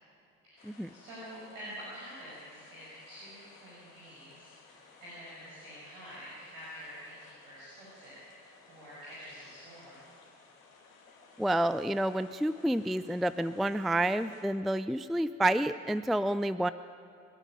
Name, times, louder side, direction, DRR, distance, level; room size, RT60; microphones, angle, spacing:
voice 1, 0.4-10.0, equal, 70° right, -8 dB, 6.1 m, -48 dB
sound 1, 0.6-14.4, left 4 dB, 80° left, 2.6 m, -58 dB
voice 2, 11.4-16.7, right 1 dB, ahead, 14 dB, 0.4 m, -29 dB
27.5 x 9.9 x 10.0 m, 2.6 s
figure-of-eight pair, 45°, 41 cm